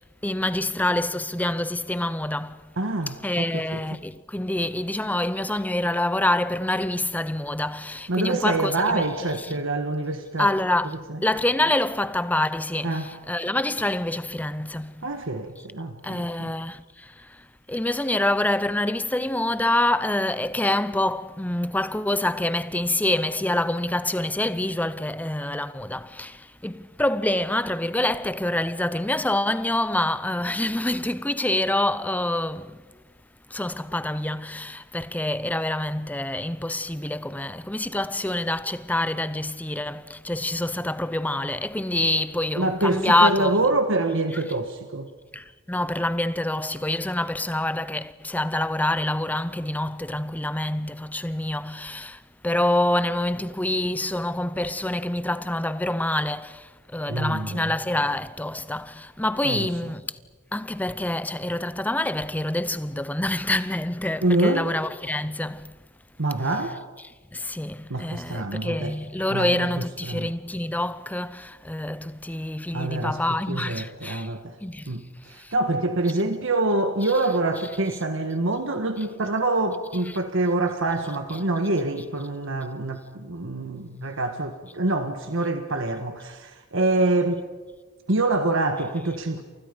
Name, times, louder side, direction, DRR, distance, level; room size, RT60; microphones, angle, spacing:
voice 1, 0.2-2.6 3.2-9.5 10.4-15.0 16.0-17.4 17.7-32.8 33.5-43.5 45.3-60.1 60.5-65.7 67.3-74.3 74.6-74.9 75.3-75.5, left 1 dB, 5° left, 0.6 m, -26 dB
voice 2, 2.8-3.8 8.1-10.5 11.1-11.2 12.8-13.1 15.0-16.5 42.6-45.1 57.1-57.7 59.4-59.9 64.2-64.7 66.2-66.8 67.9-69.0 69.3-70.3 72.7-73.2 73.5-74.6 74.9-87.4 88.1-89.4, right 2 dB, 60° right, 1.5 m, -26 dB
29.5 x 28.0 x 5.2 m
head